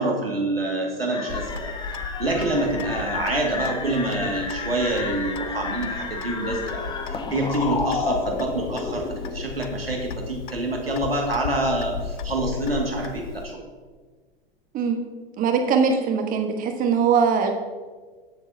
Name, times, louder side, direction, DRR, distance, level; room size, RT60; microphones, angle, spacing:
voice 1, 0.0-1.7 2.2-9.0 9.3-13.5, right 2 dB, 85° right, 0 dB, 2.1 m, -26 dB
sound 1, 1.1-9.5, left 4 dB, 15° left, 0.8 m, -31 dB
Clock, 1.3-13.4, left 6 dB, 60° left, 0.6 m, -36 dB
voice 2, 15.4-17.5, right 6 dB, 30° right, 5 dB, 1.2 m, -21 dB
19.0 x 6.9 x 2.7 m, 1.4 s
figure-of-eight pair, 95°, 29 cm